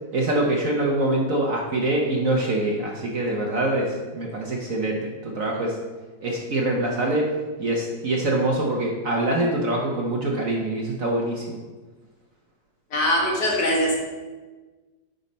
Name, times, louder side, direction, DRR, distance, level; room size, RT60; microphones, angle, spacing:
voice 1, 0.1-5.8 6.2-7.3 7.6-11.6, right 1 dB, 50° right, -1 dB, 1.1 m, -24 dB
voice 2, 12.9-14.0, equal, 55° left, -2 dB, 2.0 m, -22 dB
9.5 x 5.3 x 4.1 m, 1.3 s
omnidirectional pair, 2.1 m